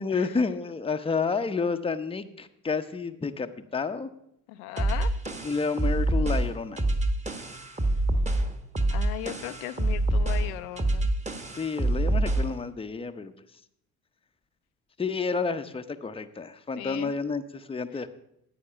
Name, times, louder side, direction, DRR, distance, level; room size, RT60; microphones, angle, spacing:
voice 1, 0.0-4.1 5.4-6.8 11.6-13.3 15.0-18.1, left 4 dB, 15° left, 8 dB, 0.8 m, -30 dB
voice 2, 4.5-5.2 8.9-11.1 16.8-17.1, left 14 dB, 75° left, 10 dB, 0.7 m, -37 dB
sound 1, 4.8-12.6, right 1 dB, 15° right, 1.4 m, -26 dB
9.7 x 8.5 x 5.7 m, 0.77 s
hypercardioid pair, 60°, 43 cm